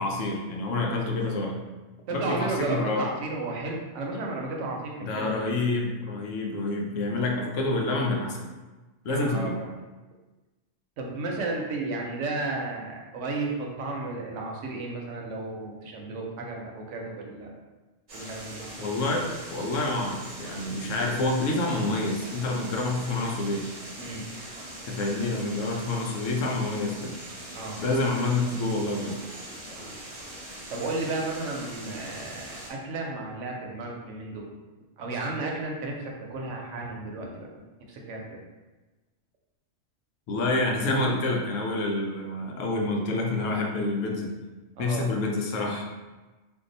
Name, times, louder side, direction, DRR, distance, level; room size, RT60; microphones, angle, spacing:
voice 1, 0.0-1.5 2.1-3.1 5.0-8.4 9.0-9.6 18.8-23.7 24.9-27.2 27.8-29.2 40.3-44.3 44.8-45.8, left 2 dB, 75° left, 1 dB, 0.9 m, -28 dB
voice 2, 2.1-5.3 9.1-9.7 11.0-17.5 18.1-18.9 24.0-24.3 27.5-27.8 29.8-29.9 30.7-34.4 35.0-38.4 44.8-45.1, right 3 dB, 70° right, 0 dB, 0.9 m, -33 dB
sound 1, 18.1-32.7, right 1 dB, 45° right, 0.7 m, -42 dB
2.6 x 2.3 x 3.8 m, 1.2 s
omnidirectional pair, 1.3 m